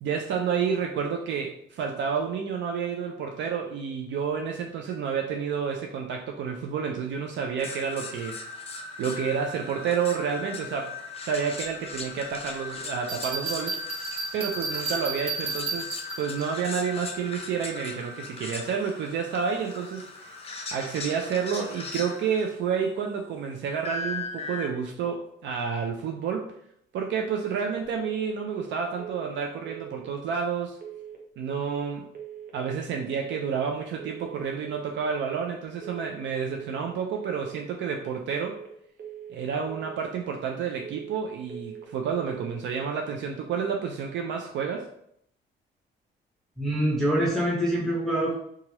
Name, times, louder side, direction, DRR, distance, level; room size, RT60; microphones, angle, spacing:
voice 1, 0.0-8.4 9.0-10.9 11.2-13.8 14.3-15.9 16.2-20.4 20.7-26.5 26.9-30.8 31.4-32.0 32.5-38.6 39.3-44.9, right 6 dB, 65° right, 2 dB, 0.4 m, -30 dB
sound 1, 7.6-22.5 23.8-24.7, left 4 dB, 30° left, 0.6 m, -38 dB
Bell, 13.1-16.4, right 4 dB, 30° right, 1.3 m, -32 dB
sound 2, 28.3-28.7 29.0-29.4 29.6-30.0 30.8-31.2 31.5-31.9 32.1-32.5 33.3-33.7 34.0-34.4 34.6-35.0 35.8-36.2 36.5-36.9 37.1-37.5 38.3-38.7 39.0-39.4 39.7-40.0 40.8-41.2 41.5-41.9 42.2-42.6, right 9 dB, 50° right, 0.8 m, -41 dB
voice 2, 46.6-48.3, right 1 dB, ahead, -6 dB, 0.9 m, -25 dB
2.9 x 2.4 x 2.8 m, 0.72 s
cardioid pair, 90°, 20 cm